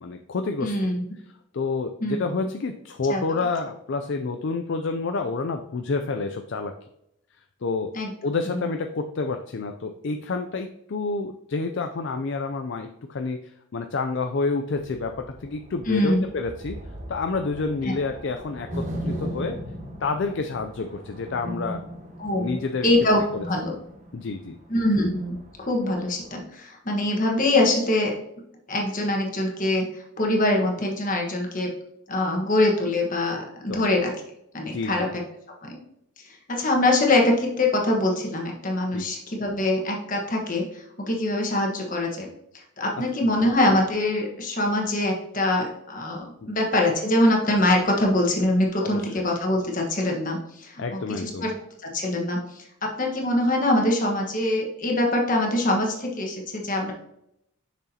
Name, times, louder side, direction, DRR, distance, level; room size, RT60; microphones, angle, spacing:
voice 1, 0.0-0.8 1.5-6.7 7.6-7.9 8.2-16.8 17.1-19.6 20.0-21.8 22.4-22.9 23.3-23.4 24.1-24.6 33.7-33.9 34.7-35.1 38.9-39.1 43.2-43.3 48.8-49.2 50.8-51.5, left 4 dB, 55° left, 6 dB, 0.4 m, -29 dB
voice 2, 0.6-1.0 2.0-2.2 2.4-2.5 3.1-3.2 7.9-8.1 8.5-8.6 15.9-16.2 22.2-22.6 22.8-23.2 23.5-23.7 24.7-28.1 28.7-29.9 30.2-31.7 32.1-34.1 34.5-35.2 35.6-35.8 36.5-42.3 42.8-51.5 51.8-56.9, left 1 dB, 35° left, 0 dB, 1.4 m, -23 dB
sound 1, 14.7-26.4, equal, 35° right, 1.3 m, -38 dB
6.7 x 6.1 x 2.8 m, 0.78 s
head